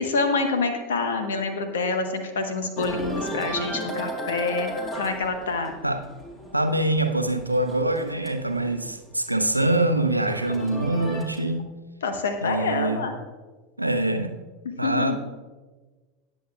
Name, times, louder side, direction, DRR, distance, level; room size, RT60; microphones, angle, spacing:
voice 1, 0.0-5.7 12.0-13.1 14.8-15.2, left 3 dB, 70° left, 6 dB, 1.2 m, -27 dB
sound 1, 2.8-9.0 9.3-11.6, equal, 20° left, 2.2 m, -35 dB
voice 2, 6.5-11.7 12.4-13.0 13.8-14.4 14.8-15.2, right 1 dB, 90° right, 6 dB, 0.7 m, -24 dB
18.5 x 7.9 x 2.5 m, 1.3 s
figure-of-eight pair, 80°, 0 cm